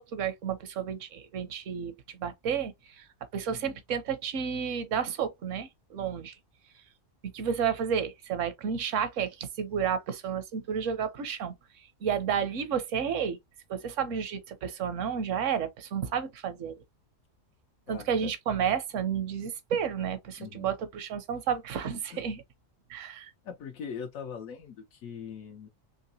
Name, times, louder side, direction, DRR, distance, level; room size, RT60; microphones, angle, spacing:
voice 1, 0.0-6.4 7.3-13.4 13.7-16.8 17.9-22.4 22.9-23.3, right 7 dB, 75° right, 1.1 m, -31 dB
voice 2, 3.5-3.8 17.9-18.3 20.4-20.7 22.1-22.2 23.4-25.7, left 7 dB, 90° left, 1.1 m, -41 dB
3.8 x 2.8 x 2.7 m
omnidirectional pair, 1.4 m